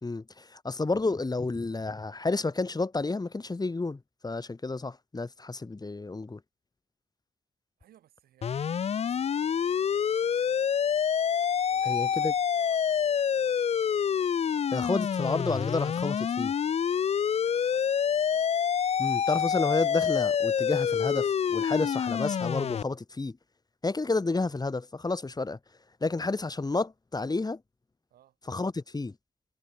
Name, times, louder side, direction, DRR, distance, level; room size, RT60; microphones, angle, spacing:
voice 1, 0.0-6.4 11.9-12.3 14.7-16.5 19.0-23.4 23.8-25.6 26.0-27.6 28.5-29.1, left 3 dB, 25° left, 2.3 m, -30 dB
voice 2, 7.8-10.8 11.7-13.5 17.2-18.5 28.1-28.4, right 12 dB, 80° right, 7.8 m, -62 dB
sound 1, 8.4-22.8, left 7 dB, 45° left, 0.5 m, -27 dB
supercardioid pair, 55°, 15 cm